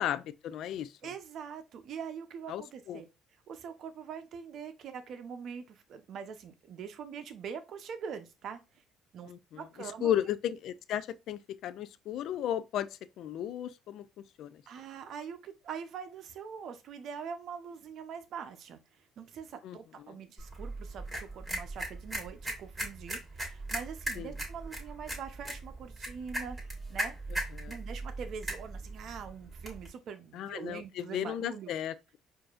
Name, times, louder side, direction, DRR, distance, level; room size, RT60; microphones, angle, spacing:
voice 1, 0.0-0.9 2.5-2.6 2.9-3.0 9.3-9.6 10.0-12.9 13.2-14.1 14.4-14.5 19.6-19.8 20.1-20.2 24.2-24.3 27.3-27.8 30.3-32.2, left 10 dB, 70° left, 0.3 m, -34 dB
voice 2, 1.0-3.1 3.5-8.6 9.1-10.2 14.7-18.8 19.2-26.6 26.9-27.2 27.7-31.7, right 7 dB, 60° right, 0.7 m, -43 dB
sound 1, 20.4-29.9, right 1 dB, 10° right, 1.7 m, -39 dB
4.7 x 2.6 x 2.4 m
cardioid pair, 105°, 0 cm